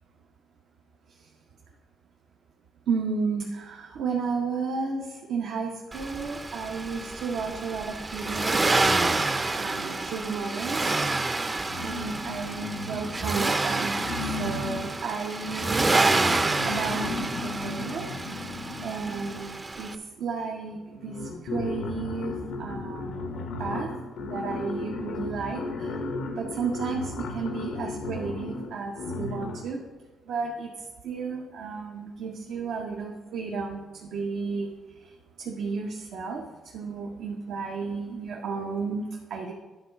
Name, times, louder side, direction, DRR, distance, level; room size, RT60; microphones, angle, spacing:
voice 1, 2.9-11.0 11.8-14.0 14.3-16.4 16.6-18.1 18.8-19.9 20.2-23.9 24.2-26.0 26.4-29.8 30.3-30.7 31.0-34.7 35.0-35.1 35.4-36.4 36.7-39.5, right 5 dB, 75° right, 0 dB, 0.8 m, -33 dB
Accelerating revving vroom, 5.9-19.9, right 3 dB, 25° right, 0.5 m, -28 dB
sound 1, 11.7-13.5 13.9-19.6 20.5-20.6 20.9-29.8, left 3 dB, 85° left, 0.8 m, -35 dB
10.0 x 3.9 x 5.7 m, 1.2 s
cardioid pair, 90°, 0 cm